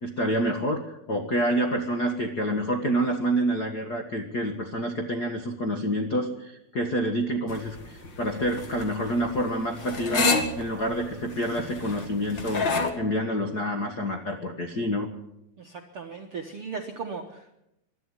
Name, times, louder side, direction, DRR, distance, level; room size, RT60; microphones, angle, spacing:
voice 1, 0.0-10.3 10.6-12.7 12.9-15.1, equal, 85° left, 4 dB, 0.8 m, -28 dB
sound 1, 7.5-12.9, left 3 dB, 45° left, 1.7 m, -29 dB
voice 2, 15.6-17.6, right 5 dB, 70° right, 2 dB, 1.3 m, -37 dB
21.0 x 12.5 x 9.8 m, 0.86 s
omnidirectional pair, 4.6 m